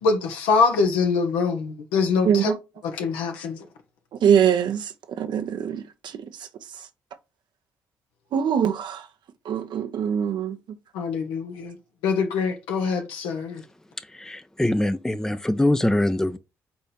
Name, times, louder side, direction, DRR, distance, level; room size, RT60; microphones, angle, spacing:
voice 1, 0.0-2.5 2.9-3.7 10.9-11.8 12.0-13.6, left 4 dB, 80° left, 1.0 m, -24 dB
voice 2, 2.2-2.6 4.2-6.5 6.7-6.9 8.3-9.1 9.4-10.6, right 8 dB, 65° right, 1.0 m, -23 dB
voice 3, 14.1-16.4, left 1 dB, 5° left, 0.6 m, -23 dB
4.6 x 4.2 x 5.2 m
hypercardioid pair, 50°, 8 cm